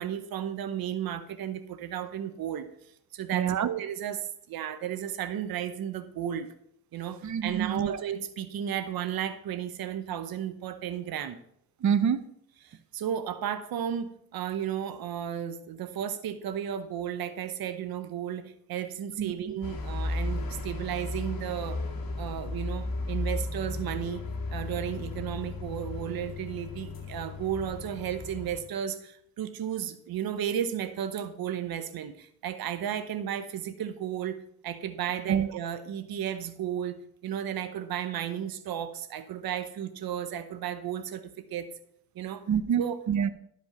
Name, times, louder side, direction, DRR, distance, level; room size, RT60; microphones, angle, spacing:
voice 1, 0.0-2.7 3.1-6.5 6.9-11.4 12.7-21.8 22.2-24.2 24.5-41.7 42.1-42.5 42.8-43.0, right 9 dB, 85° right, 12 dB, 0.8 m, -34 dB
voice 2, 3.3-3.7 7.2-8.0 11.8-12.2 19.2-19.5 35.3-35.5 42.5-43.3, right 8 dB, 55° right, 13 dB, 0.8 m, -27 dB
sound 1, 19.6-28.6, left 2 dB, 70° left, 2.0 m, -35 dB
12.0 x 5.2 x 5.7 m, 0.71 s
cardioid pair, 65°, 35 cm